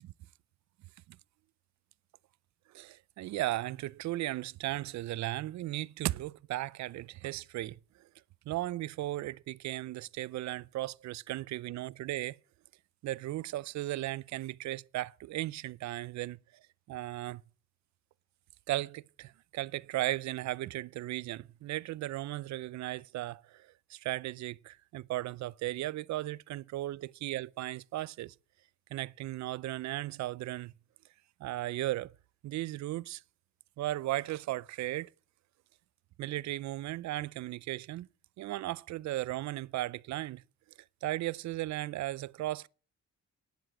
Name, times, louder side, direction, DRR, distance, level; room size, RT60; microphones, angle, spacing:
voice 1, 2.7-7.8 8.5-12.4 13.0-16.4 16.9-17.4 18.7-28.3 28.9-30.7 31.4-32.1 32.4-33.2 33.8-35.1 36.2-38.1 38.4-40.4 41.0-42.7, right 16 dB, 65° right, 0.5 m, -36 dB
10.0 x 7.7 x 8.9 m
cardioid pair, 90°, 30 cm